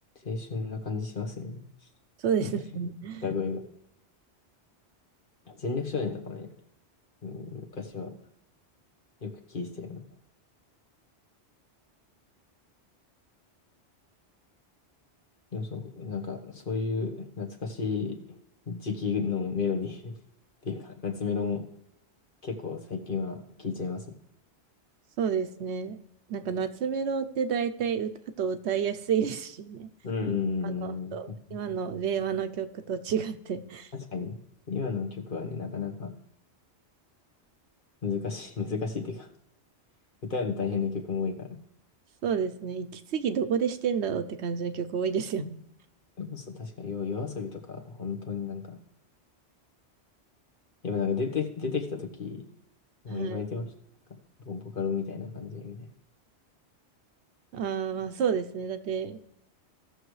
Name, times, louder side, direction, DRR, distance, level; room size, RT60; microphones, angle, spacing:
voice 1, 0.2-1.6 2.4-2.5 3.2-3.7 5.5-6.5 7.2-8.2 9.2-10.0 15.5-18.2 18.7-20.1 20.6-21.6 22.4-24.2 30.0-31.6 33.9-34.4 34.7-36.1 38.0-39.3 40.2-41.6 46.2-48.8 50.8-52.4 53.0-53.6 54.4-55.8, left 5 dB, 50° left, 3 dB, 1.4 m, -32 dB
voice 2, 2.2-3.3 25.2-26.0 26.3-28.1 28.4-29.9 30.6-33.9 42.2-45.6 53.1-53.4 57.5-59.2, right 7 dB, 75° right, 10 dB, 1.0 m, -30 dB
16.5 x 6.5 x 3.2 m, 0.77 s
omnidirectional pair, 1.2 m